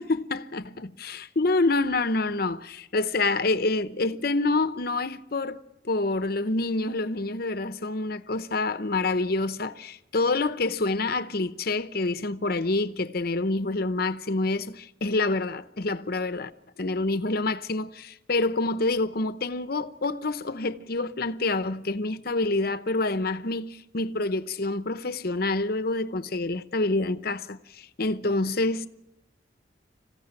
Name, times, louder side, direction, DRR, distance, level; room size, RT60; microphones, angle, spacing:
voice 1, 0.0-5.6 5.9-16.5 16.8-28.9, left 2 dB, 55° left, 0.8 m, -27 dB
26.0 x 15.0 x 8.9 m
head